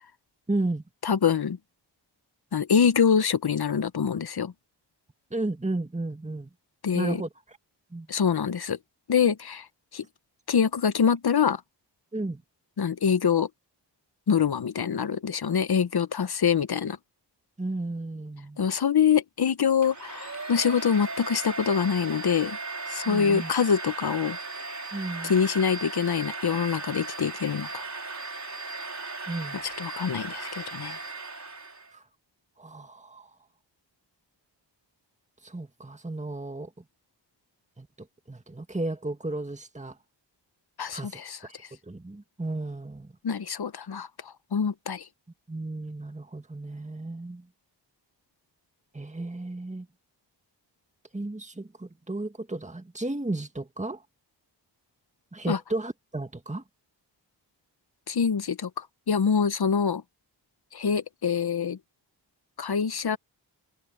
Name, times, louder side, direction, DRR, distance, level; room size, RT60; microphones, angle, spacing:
voice 1, 0.5-0.8 5.3-6.5 6.9-7.3 7.9-8.1 12.1-12.4 17.6-18.6 23.1-23.5 24.9-25.4 29.3-29.6 31.9-32.0 32.6-33.3 35.4-36.7 37.8-37.9 38.3-40.0 40.9-41.6 41.9-43.1 45.5-47.5 48.9-49.9 51.1-54.0 55.3-56.6, right 2 dB, 15° right, 1.9 m, -33 dB
voice 2, 1.0-1.6 2.5-4.5 6.8-7.2 8.1-8.8 9.1-9.7 9.9-10.0 10.5-11.6 12.8-13.5 14.3-17.0 18.6-22.6 22.9-24.4 25.2-27.8 29.5-31.0 40.8-41.4 43.2-45.1 55.5-55.6 58.1-60.0 60.7-61.8 62.6-63.2, left 7 dB, 55° left, 1.0 m, -25 dB
Domestic sounds home sounds, 19.8-31.9, right 3 dB, 40° right, 4.5 m, -37 dB
cardioid pair, 60°, 44 cm